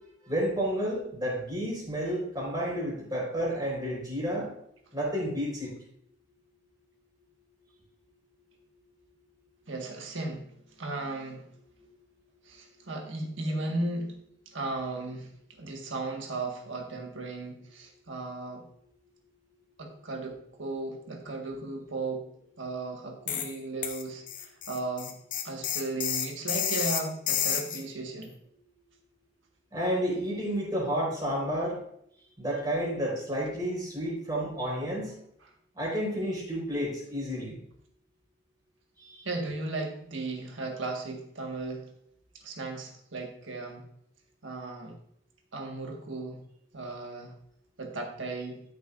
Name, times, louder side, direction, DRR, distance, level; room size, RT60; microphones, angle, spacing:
voice 1, 0.3-4.5 4.9-5.7 29.7-31.8 32.4-35.2 35.8-37.5 39.0-39.2, equal, 20° right, -4 dB, 4.0 m, -31 dB
voice 2, 9.7-10.5 10.8-11.4 12.5-14.1 14.5-15.3 15.6-18.6 19.8-22.3 22.6-25.1 25.4-28.3 39.2-41.9 42.4-43.9 44.4-44.9 45.5-46.4 46.7-47.3 47.8-48.6, right 2 dB, 75° right, 2 dB, 1.6 m, -35 dB
sound 1, 23.3-23.5 23.8-27.8, left 9 dB, 40° left, 0.8 m, -30 dB
13.5 x 6.9 x 2.5 m, 0.71 s
head